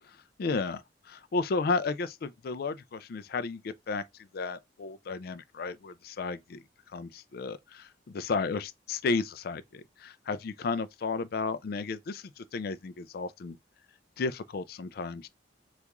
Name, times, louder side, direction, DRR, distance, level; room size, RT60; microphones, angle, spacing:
voice 1, 0.4-4.0 4.3-6.6 6.9-13.6 14.2-15.3, left 4 dB, 50° left, 0.3 m, -33 dB
2.9 x 2.4 x 3.4 m
head